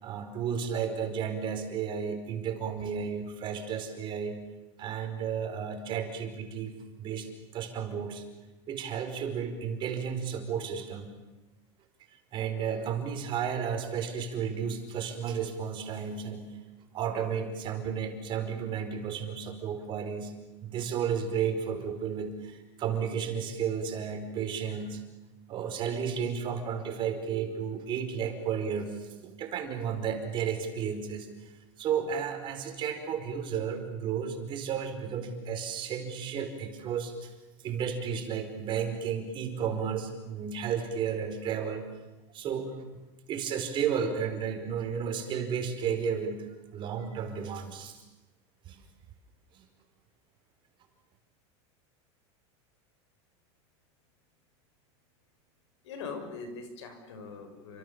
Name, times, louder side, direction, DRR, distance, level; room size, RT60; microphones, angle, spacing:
voice 1, 0.0-4.4 4.8-8.2 8.7-11.1 12.3-16.5 16.9-20.3 20.6-25.0 25.5-31.3 31.8-37.3 37.6-41.8 42.3-42.7 43.3-46.5 46.7-48.0 48.7-48.8 49.5-49.7, right 7 dB, 35° right, 5 dB, 4.9 m, -33 dB
voice 2, 55.8-57.8, left 4 dB, 90° left, 7 dB, 6.5 m, -41 dB
29.5 x 26.0 x 7.2 m, 1.1 s
supercardioid pair, 145°, 14 cm